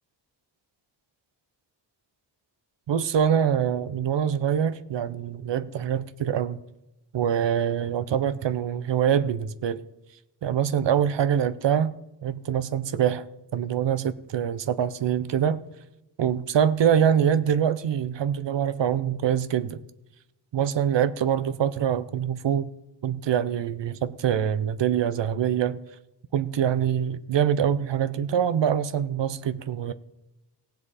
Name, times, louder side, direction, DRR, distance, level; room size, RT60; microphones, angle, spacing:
voice 1, 2.9-6.6 7.1-9.8 10.4-11.9 12.2-13.3 13.5-15.6 16.2-19.8 20.5-22.7 23.0-25.8 26.3-29.9, right 9 dB, 85° right, 14 dB, 0.7 m, -24 dB
18.0 x 7.7 x 4.2 m, 0.93 s
wide cardioid pair, 120°, 43 cm